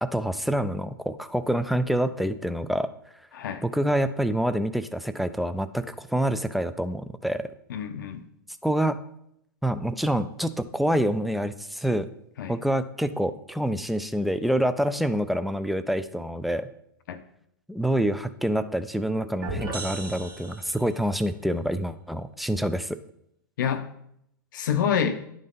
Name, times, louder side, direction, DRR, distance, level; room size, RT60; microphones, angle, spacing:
voice 1, 0.0-2.9 3.6-7.5 8.6-9.0 9.6-12.1 12.5-16.7 17.7-23.0, equal, ahead, 11 dB, 0.4 m, -26 dB
voice 2, 7.7-8.2 12.4-12.5 17.1-17.2 23.6-23.9 24.5-25.2, left 8 dB, 65° left, 8 dB, 0.6 m, -27 dB
sound 1, 19.4-21.1, right 2 dB, 80° right, 1.9 m, -36 dB
10.5 x 3.8 x 3.8 m, 0.75 s
hypercardioid pair, 105°, 11 cm